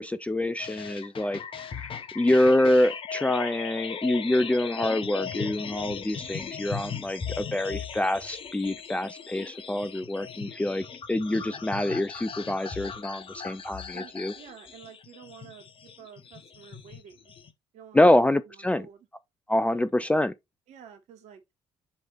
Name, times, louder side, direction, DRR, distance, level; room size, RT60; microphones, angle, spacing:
voice 1, 0.0-1.4 1.8-1.9 2.2-14.3 17.9-18.8 19.5-20.3, left 1 dB, 10° left, 0.5 m, -26 dB
sound 1, 0.6-17.5, left 7 dB, 40° left, 1.1 m, -38 dB
voice 2, 13.9-17.3 17.7-18.1 18.5-19.1 19.7-19.8 20.7-21.4, right 8 dB, 55° right, 1.9 m, -50 dB
7.1 x 3.4 x 4.5 m
figure-of-eight pair, 50°, 14 cm